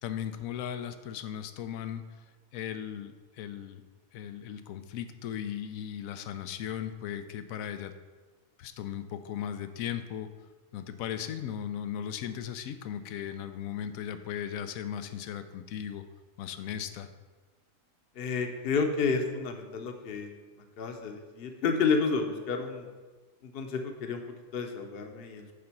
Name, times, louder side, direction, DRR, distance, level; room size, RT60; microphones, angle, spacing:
voice 1, 0.0-2.2 2.5-3.8 4.1-7.9 8.6-10.3 10.7-16.0 16.4-17.1, left 9 dB, 90° left, 10 dB, 1.0 m, -37 dB
voice 2, 18.1-20.4 20.8-22.9 23.4-24.2 24.5-25.4, left 5 dB, 50° left, 5 dB, 0.9 m, -30 dB
8.5 x 3.8 x 5.9 m, 1.3 s
omnidirectional pair, 1.4 m